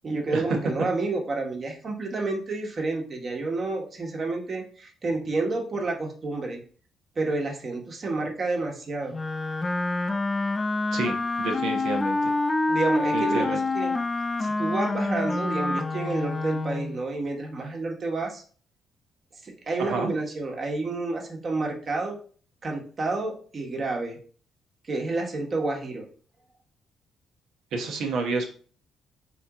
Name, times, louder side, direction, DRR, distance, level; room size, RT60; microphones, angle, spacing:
voice 1, 0.0-6.6 7.2-9.1 12.7-13.9 14.4-18.4 19.4-22.2 22.6-24.2 24.9-26.0, right 3 dB, 40° right, 1 dB, 1.3 m, -29 dB
Wind instrument woodwind instrument, 9.1-17.0, left 2 dB, 25° left, 0.4 m, -27 dB
voice 2, 10.9-12.3 13.1-13.6 19.8-20.1 27.7-28.5, right 3 dB, 80° right, 3 dB, 1.1 m, -29 dB
4.2 x 2.9 x 3.6 m, 0.42 s
cardioid pair, 90°, 0 cm